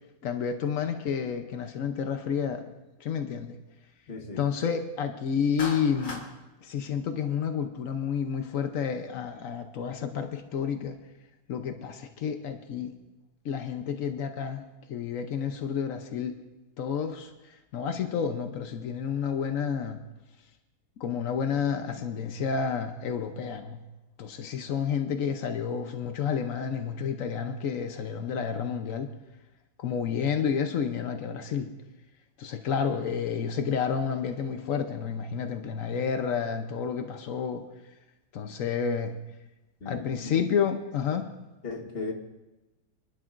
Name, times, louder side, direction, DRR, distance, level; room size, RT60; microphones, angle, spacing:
voice 1, 0.2-2.7 3.0-3.6 4.4-6.2 6.6-11.0 11.5-12.9 13.4-14.6 14.9-16.4 16.8-20.0 21.0-23.8 24.2-29.1 29.8-31.7 32.4-37.6 38.3-39.2 39.8-41.3, left 7 dB, 80° left, 6 dB, 0.7 m, -30 dB
voice 2, 4.1-4.4 39.8-40.4 41.6-42.1, left 3 dB, 30° left, 2 dB, 1.3 m, -37 dB
Clapping, 5.6-6.3, left 2 dB, 65° left, 2.6 m, -37 dB
27.5 x 11.5 x 2.5 m, 1.0 s
omnidirectional pair, 2.4 m